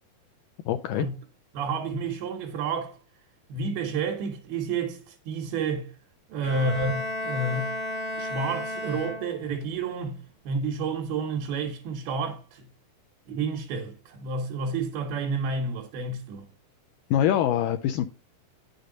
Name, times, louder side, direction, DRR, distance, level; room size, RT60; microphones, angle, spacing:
voice 1, 0.7-1.1 17.1-18.1, left 10 dB, 90° left, 1.9 m, -24 dB
voice 2, 1.5-3.0 3.5-5.9 6.3-7.8 8.2-12.7 13.3-16.5, right 4 dB, 80° right, 3.1 m, -30 dB
Bowed string instrument, 6.4-9.6, left 1 dB, 40° left, 2.1 m, -33 dB
9.9 x 6.6 x 3.8 m
omnidirectional pair, 4.4 m